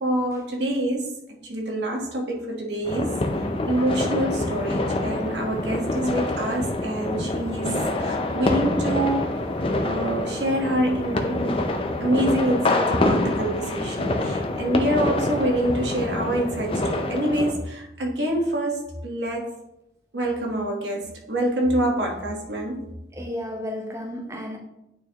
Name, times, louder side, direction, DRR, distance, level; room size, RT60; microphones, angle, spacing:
voice 1, 0.0-3.2 3.7-9.3 9.8-11.6 12.0-19.5 20.1-22.8, right 1 dB, 80° right, 1.4 m, -26 dB
sound 1, 2.9-17.5, left 2 dB, 30° left, 0.6 m, -26 dB
voice 2, 23.1-24.6, left 1 dB, 15° right, 0.7 m, -32 dB
9.0 x 4.4 x 3.0 m
head